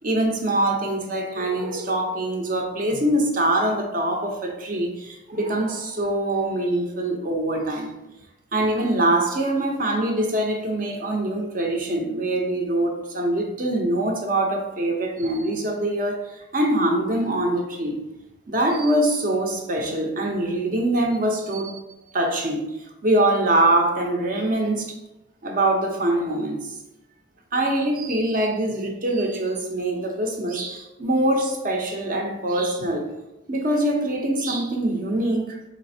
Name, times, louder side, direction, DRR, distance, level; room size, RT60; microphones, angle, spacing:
voice 1, 0.0-7.9 8.5-18.0 18.5-21.8 22.1-22.8 23.0-24.9 25.4-26.7 27.5-33.1 33.5-35.6, right 1 dB, 40° right, 0.6 m, -23 dB
4.1 x 3.7 x 2.7 m
head